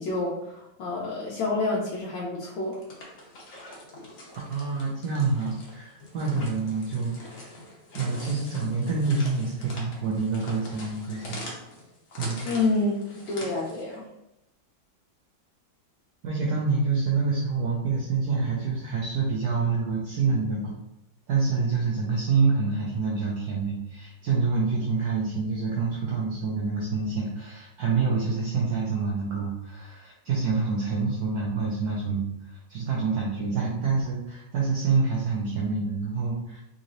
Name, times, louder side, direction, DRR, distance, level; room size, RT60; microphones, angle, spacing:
voice 1, 0.0-2.8 12.4-14.1, left 3 dB, 85° left, -5 dB, 1.4 m, -28 dB
sound 1, 2.6-14.0, left 1 dB, 55° left, 1.1 m, -44 dB
voice 2, 4.5-7.5 7.9-11.4 12.2-12.5 16.2-20.8 21.3-36.6, right 4 dB, 65° right, -4 dB, 1.0 m, -27 dB
3.8 x 3.0 x 2.6 m, 0.84 s
omnidirectional pair, 2.0 m